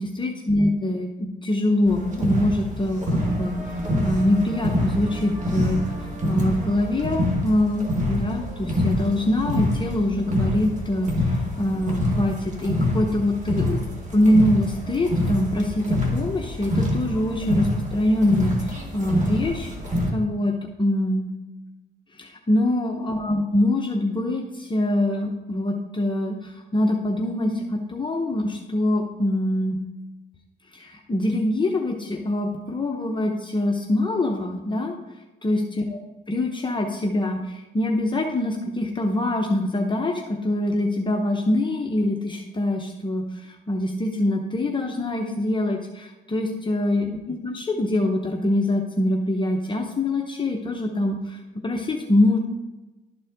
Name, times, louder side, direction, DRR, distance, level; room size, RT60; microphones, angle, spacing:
voice 1, 0.0-13.8 14.1-19.7 20.1-21.3 22.1-29.8 30.7-35.0 35.4-36.0 36.3-52.4, left 1 dB, 25° left, 0 dB, 0.9 m, -24 dB
sound 1, 1.9-20.1, left 1 dB, 40° right, 1.9 m, -26 dB
12.0 x 4.3 x 3.6 m, 1.1 s
cardioid pair, 90°, 20 cm